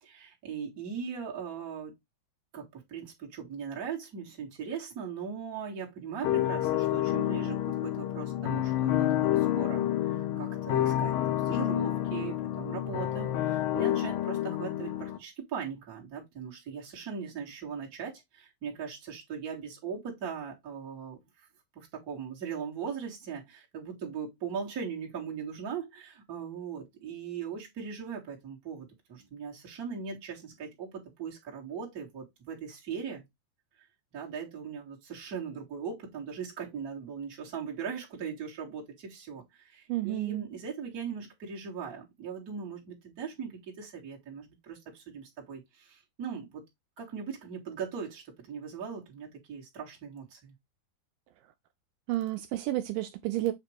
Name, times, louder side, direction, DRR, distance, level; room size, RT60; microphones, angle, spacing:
voice 1, 0.0-1.9 2.5-21.5 21.8-33.2 34.1-46.6 47.0-50.5, right 6 dB, 30° right, 1.8 m, -39 dB
sound 1, 6.2-15.2, left 12 dB, 75° left, 2.3 m, -29 dB
voice 2, 39.9-40.5 52.1-53.5, right 15 dB, 90° right, 1.9 m, -31 dB
7.7 x 3.0 x 4.4 m
omnidirectional pair, 4.5 m